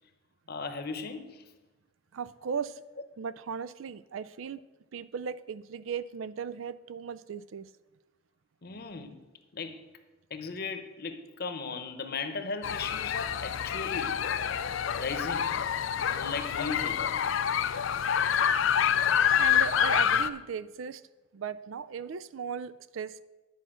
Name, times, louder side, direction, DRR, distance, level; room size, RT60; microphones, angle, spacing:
voice 1, 0.5-1.4 8.6-9.2 9.5-9.8 10.3-14.2 15.0-15.6 16.1-17.1, left 4 dB, 50° left, 0.9 m, -37 dB
voice 2, 2.1-2.8 3.2-4.6 4.9-7.7 19.4-21.0 21.3-23.2, right 6 dB, 85° right, 0.4 m, -37 dB
sound 1, 12.6-20.3, left 8 dB, 70° left, 0.4 m, -27 dB
10.0 x 5.0 x 7.5 m
head